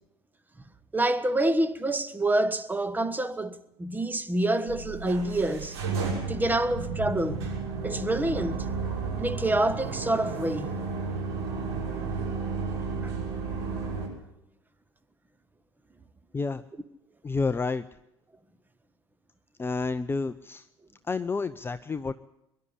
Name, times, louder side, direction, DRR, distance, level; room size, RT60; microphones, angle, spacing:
voice 1, 0.9-5.8 6.3-7.5 7.8-8.7 9.2-10.7 13.0-13.1, right 1 dB, 10° right, 1.3 m, -27 dB
sound 1, 4.7-14.1, right 4 dB, 65° right, 6.3 m, -32 dB
voice 2, 17.2-17.8 19.6-20.7 21.0-22.1, left 4 dB, 15° left, 0.7 m, -29 dB
23.0 x 11.5 x 9.9 m
figure-of-eight pair, 70°, 14 cm